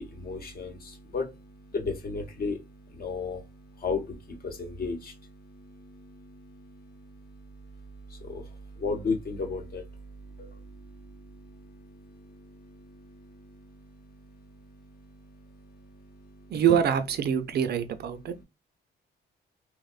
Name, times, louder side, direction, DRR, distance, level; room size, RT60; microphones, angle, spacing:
voice 1, 0.0-16.6 18.1-18.4, left 4 dB, 50° left, 0.9 m, -37 dB
voice 2, 16.5-18.3, right 8 dB, 55° right, 0.4 m, -25 dB
2.9 x 2.0 x 2.2 m
cardioid pair, 90°, 20 cm